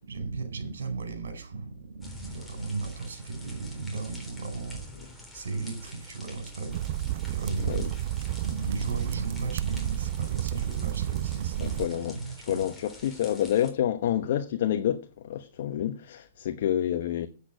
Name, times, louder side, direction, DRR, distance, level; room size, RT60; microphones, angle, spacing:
voice 1, 0.0-7.9 8.4-12.7, right 3 dB, 85° right, 4.4 m, -36 dB
sound 1, 2.0-13.7, left 1 dB, 5° left, 3.5 m, -47 dB
sound 2, 6.7-11.9, right 13 dB, 50° right, 0.5 m, -31 dB
voice 2, 11.6-12.2 12.5-17.3, left 11 dB, 60° left, 1.1 m, -28 dB
8.6 x 8.3 x 8.3 m
hypercardioid pair, 140°, 0 cm